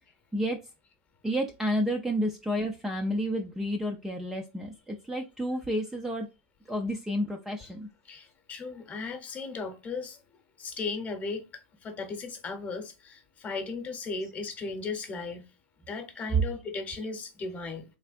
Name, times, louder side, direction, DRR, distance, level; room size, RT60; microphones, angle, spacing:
voice 1, 1.2-6.3 6.7-7.9, equal, 5° right, 0.3 m, -30 dB
voice 2, 8.0-10.2 10.6-15.4 15.9-17.8, left 4 dB, 25° left, 0.8 m, -36 dB
3.5 x 3.3 x 2.4 m
supercardioid pair, 150°, 6 cm